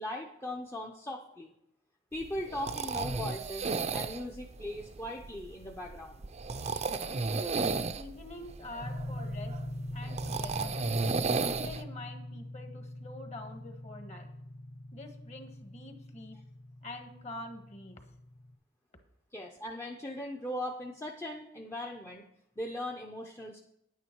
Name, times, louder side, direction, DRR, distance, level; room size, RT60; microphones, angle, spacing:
voice 1, 0.0-1.5 2.1-6.2 19.3-22.3 22.6-23.6, left 1 dB, 15° left, 1 dB, 0.7 m, -39 dB
sound 1, 2.2-11.8, right 4 dB, 35° right, 0.5 m, -34 dB
voice 2, 7.9-9.5 9.9-10.9 11.5-14.3 14.9-16.4 16.8-18.0, left 2 dB, 35° left, 6 dB, 1.4 m, -46 dB
sound 2, 8.8-18.5, left 1 dB, 55° left, 2.4 m, -43 dB
10.0 x 9.3 x 4.5 m, 0.80 s
head